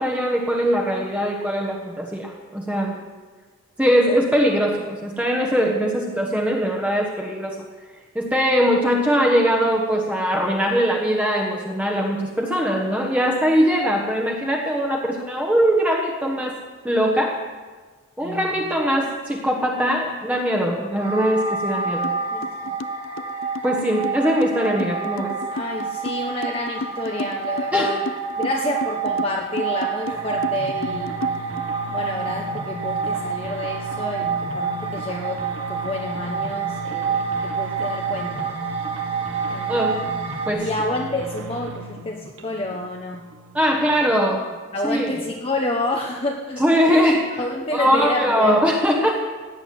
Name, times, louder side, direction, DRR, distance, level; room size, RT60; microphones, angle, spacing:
voice 1, 0.0-3.0 3.8-7.5 8.1-16.6 16.8-17.4 18.2-22.0 23.6-25.3 27.7-27.9 39.7-40.0 40.5-40.7 43.5-44.5 44.8-45.1 46.6-47.2 47.7-49.1, equal, 5° right, -1 dB, 1.4 m, -21 dB
voice 2, 18.2-18.5 21.9-22.8 25.5-28.0 28.4-31.3 31.9-38.5 39.5-39.9 40.6-43.3 44.7-47.1 47.4-48.6, left 2 dB, 30° left, 1 dB, 1.0 m, -29 dB
sound 1, 21.0-40.5, right 6 dB, 25° right, 2.1 m, -28 dB
sound 2, 22.0-22.2 22.4-31.6, left 3 dB, 75° left, 0.6 m, -32 dB
sound 3, 30.0-44.2, right 1 dB, 75° right, 1.6 m, -36 dB
17.0 x 8.1 x 9.4 m, 1.4 s
head